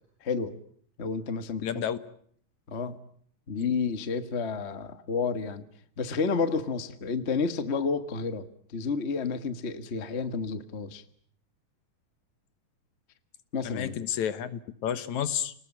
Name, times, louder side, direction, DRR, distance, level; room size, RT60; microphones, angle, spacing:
voice 1, 0.2-0.5 1.0-1.7 2.7-3.0 3.5-5.6 6.0-8.5 8.7-11.0 13.5-14.0, left 5 dB, 45° left, 11 dB, 0.9 m, -30 dB
voice 2, 1.6-2.0 3.6-3.7 13.6-15.5, left 9 dB, 65° left, 14 dB, 2.4 m, -31 dB
30.0 x 20.0 x 8.9 m, 0.63 s
omnidirectional pair, 3.8 m